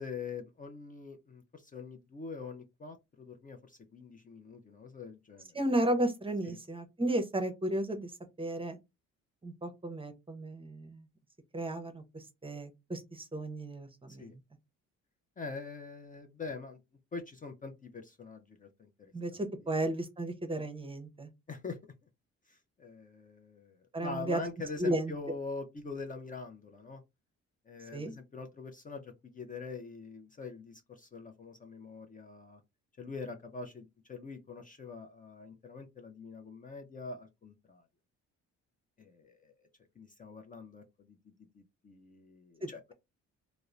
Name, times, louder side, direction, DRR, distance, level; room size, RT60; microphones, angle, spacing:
voice 1, 0.0-5.6 6.4-6.6 14.1-14.3 15.4-16.8 17.1-19.4 21.5-21.8 22.5-27.0 27.7-32.6 33.0-37.8 39.0-39.7 40.0-42.9, left 4 dB, 25° left, 0.5 m, -44 dB
voice 2, 5.5-8.1 8.4-8.8 9.4-11.0 11.5-14.3 19.1-21.3 23.9-24.4 24.8-25.1 27.9-28.1 42.6-42.9, right 1 dB, 20° right, 0.6 m, -34 dB
2.9 x 2.0 x 2.3 m
cardioid pair, 90°, 30 cm